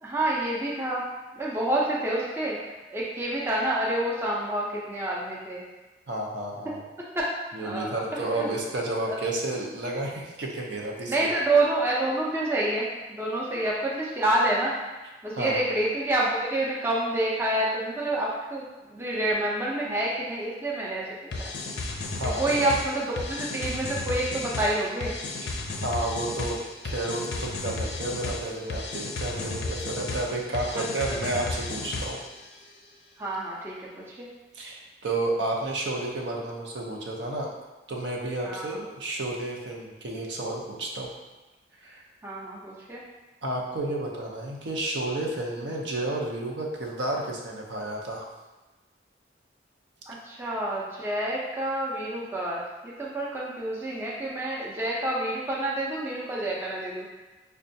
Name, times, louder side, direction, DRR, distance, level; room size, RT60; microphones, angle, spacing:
voice 1, 0.0-1.0 1.3-2.6 2.9-5.6 7.2-7.3 7.6-8.5 9.1-9.2 11.1-14.8 15.2-18.6 18.9-21.5 22.4-25.1 30.8-30.9 33.2-34.3 38.4-38.8 42.2-43.0 50.1-57.1, right 1 dB, 15° right, -5 dB, 0.4 m, -28 dB
voice 2, 6.1-6.8 7.5-11.3 15.4-15.6 22.2-22.6 25.8-26.6 26.8-32.2 34.5-37.5 37.9-41.1 41.8-42.0 43.4-48.3, right 2 dB, 75° right, -1 dB, 0.6 m, -31 dB
sound 1, 21.3-32.4, left 2 dB, 60° left, 0.4 m, -33 dB
5.2 x 2.2 x 2.6 m, 1.1 s
head